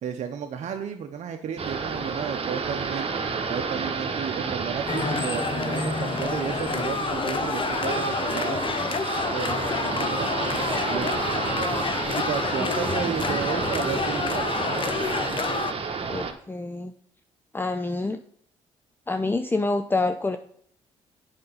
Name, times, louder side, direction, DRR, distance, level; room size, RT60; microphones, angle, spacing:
voice 1, 0.0-3.1 3.5-8.6 9.3-11.1 12.2-14.5, right 8 dB, 60° right, 5 dB, 0.8 m, -33 dB
sound 1, 1.6-16.3, right 5 dB, 45° right, 1.3 m, -30 dB
sound 2, 4.9-15.7, left 5 dB, 40° left, 0.8 m, -28 dB
voice 2, 16.1-16.9 17.5-18.2 19.1-20.4, left 2 dB, 15° left, 8 dB, 0.6 m, -27 dB
7.6 x 5.3 x 5.6 m, 0.62 s
supercardioid pair, 55°, 14 cm